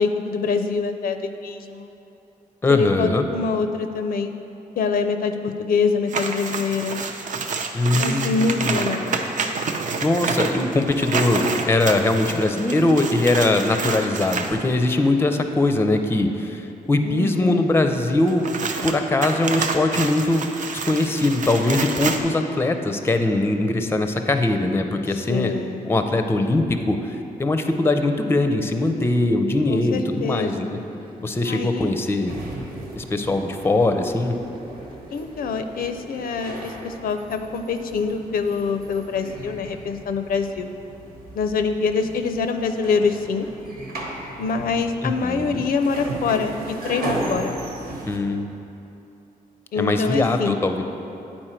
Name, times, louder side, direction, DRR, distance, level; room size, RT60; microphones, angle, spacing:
voice 1, 0.0-1.9 2.7-4.3 4.8-7.0 8.0-9.2 17.0-17.7 25.3-25.9 29.7-30.8 31.5-31.9 35.1-40.7 41.4-43.5 44.4-47.6 49.7-50.6, left 4 dB, 75° left, 8 dB, 0.4 m, -25 dB
voice 2, 2.6-3.3 7.7-8.9 10.0-18.5 18.8-20.5 20.8-25.6 25.8-30.8 31.2-32.3 33.0-34.3 45.0-45.6 48.0-48.4 49.8-50.8, left 2 dB, 15° left, 6 dB, 0.5 m, -21 dB
sound 1, 6.1-14.6 18.3-22.2, right 4 dB, 55° right, 0.5 m, -28 dB
sound 2, 29.8-36.8, right 1 dB, 30° right, 1.0 m, -44 dB
sound 3, 32.3-48.2, right 1 dB, 80° right, 1.2 m, -36 dB
8.9 x 4.3 x 4.4 m, 2.8 s
cardioid pair, 90°, 15 cm